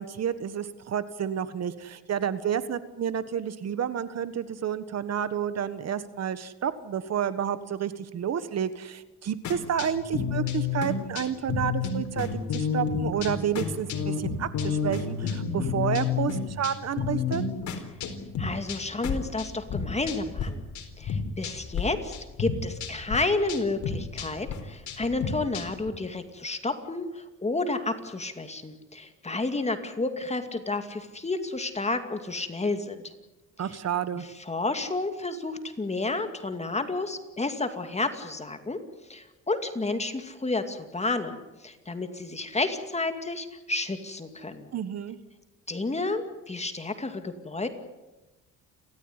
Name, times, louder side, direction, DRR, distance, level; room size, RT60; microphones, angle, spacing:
voice 1, 0.0-17.4 33.6-34.2 44.7-45.2, right 8 dB, 55° right, 13 dB, 1.4 m, -30 dB
sound 1, 9.4-20.5 20.7-21.8 22.1-25.9, left 6 dB, 70° left, 4.1 m, -31 dB
voice 2, 18.4-20.6 21.0-33.1 34.5-38.8 39.1-44.7 45.7-47.7, left 2 dB, 20° left, 7 dB, 2.4 m, -31 dB
30.0 x 14.0 x 9.8 m, 1.1 s
cardioid pair, 90°, 30 cm